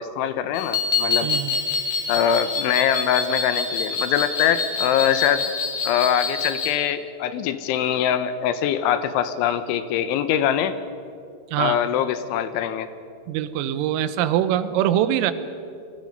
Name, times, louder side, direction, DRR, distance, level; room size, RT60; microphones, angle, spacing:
voice 1, 0.0-1.3 2.1-5.4 5.8-10.8 11.6-12.9, left 9 dB, 80° left, 11 dB, 3.2 m, -23 dB
sound 1, 0.5-6.8, left 4 dB, 45° left, 2.5 m, -26 dB
voice 2, 1.2-1.6 11.5-11.8 13.3-15.3, right 11 dB, 90° right, 12 dB, 3.5 m, -23 dB
29.5 x 22.0 x 5.4 m, 2.5 s
omnidirectional pair, 5.7 m